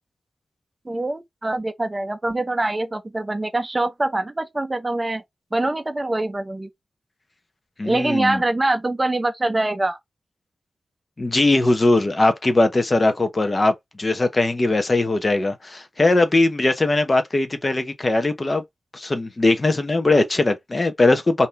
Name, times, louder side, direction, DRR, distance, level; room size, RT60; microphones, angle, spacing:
voice 1, 0.9-5.2 5.5-6.7 7.8-10.0, right 2 dB, 20° right, 0.6 m, -24 dB
voice 2, 7.8-8.4 11.2-18.6 18.9-21.5, left 2 dB, 30° left, 0.8 m, -20 dB
3.6 x 2.7 x 4.4 m
wide cardioid pair, 120°, 0 cm